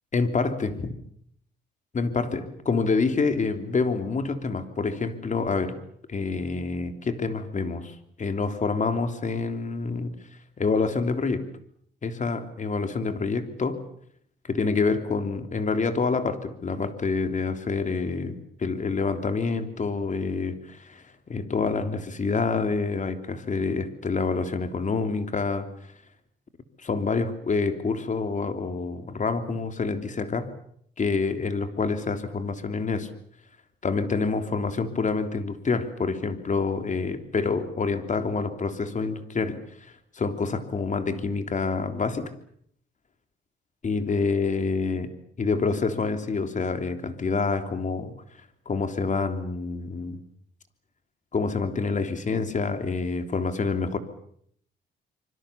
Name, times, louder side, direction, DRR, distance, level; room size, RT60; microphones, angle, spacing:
voice 1, 0.1-0.9 1.9-5.8 6.1-10.1 10.6-11.5 12.0-13.8 14.5-21.0 21.3-25.7 26.8-30.5 31.0-33.1 33.8-42.3 43.8-45.1 45.4-48.1 48.7-50.2 51.3-54.0, left 4 dB, 40° left, 8 dB, 3.3 m, -27 dB
26.5 x 24.5 x 7.1 m, 0.65 s
cardioid pair, 90°, 20 cm